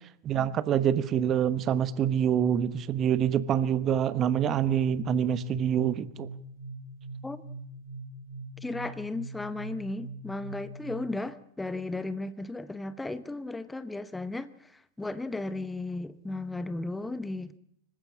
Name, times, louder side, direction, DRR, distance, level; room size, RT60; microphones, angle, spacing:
voice 1, 0.2-6.3, right 9 dB, 30° right, 15 dB, 1.1 m, -26 dB
sound 1, 3.7-11.3, right 2 dB, 85° right, 2.8 m, -43 dB
voice 2, 8.6-17.6, left 2 dB, 5° left, 15 dB, 0.9 m, -35 dB
25.5 x 15.5 x 8.5 m, 0.68 s
figure-of-eight pair, 90°, 0 cm